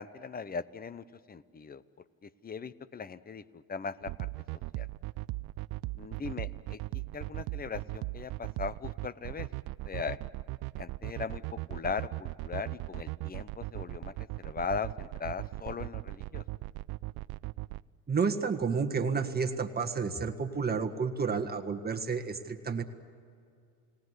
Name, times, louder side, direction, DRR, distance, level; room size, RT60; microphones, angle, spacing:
voice 1, 0.0-1.8 2.2-4.9 5.9-9.5 9.9-10.2 10.8-16.4, left 5 dB, 20° left, 17 dB, 0.9 m, -39 dB
sound 1, 4.0-17.8, right 21 dB, 65° right, 0.6 m, -38 dB
voice 2, 18.1-22.8, right 5 dB, 25° right, 4 dB, 1.6 m, -31 dB
30.0 x 18.5 x 8.1 m, 2.4 s
supercardioid pair, 95°, 40 cm